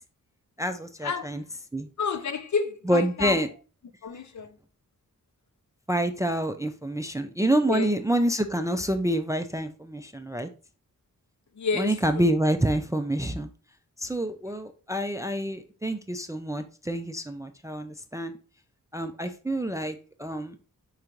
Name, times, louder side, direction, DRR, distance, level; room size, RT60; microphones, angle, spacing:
voice 1, 0.6-1.4 1.7-1.9 2.9-3.5 5.9-10.5 11.7-13.5 14.0-18.4 18.9-20.6, right 1 dB, 10° right, 0.3 m, -27 dB
voice 2, 2.0-3.4 4.0-4.5 7.7-7.9 11.6-12.3, left 5 dB, 60° left, 0.6 m, -30 dB
4.7 x 2.5 x 4.4 m
wide cardioid pair, 120°, 32 cm